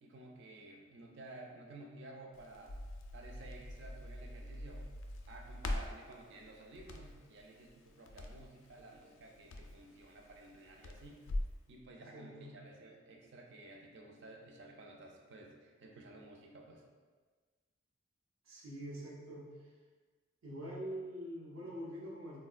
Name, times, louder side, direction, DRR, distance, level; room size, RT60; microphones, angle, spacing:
voice 1, 0.0-2.7 3.1-4.9 5.3-11.2 11.7-16.8, right 2 dB, 55° right, 1 dB, 0.4 m, -53 dB
Crackle, 2.3-11.6, left 1 dB, 70° left, 0.3 m, -44 dB
voice 2, 12.1-12.5 18.5-19.7 20.4-22.4, equal, 85° right, -5 dB, 0.8 m, -45 dB
3.6 x 2.2 x 2.3 m, 1.4 s
head